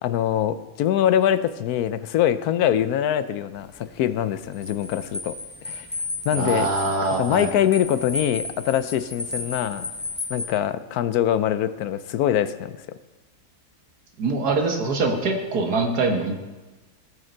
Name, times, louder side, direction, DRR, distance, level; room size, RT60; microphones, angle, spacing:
voice 1, 0.0-5.9 6.2-6.7 7.2-9.9 10.3-12.8, left 10 dB, 80° left, 13 dB, 1.1 m, -23 dB
sound 1, 3.6-10.5, left 2 dB, 15° left, 0.4 m, -33 dB
voice 2, 6.3-7.5 14.2-16.4, right 3 dB, 85° right, 3 dB, 1.9 m, -24 dB
17.0 x 6.5 x 4.5 m, 1.2 s
omnidirectional pair, 1.6 m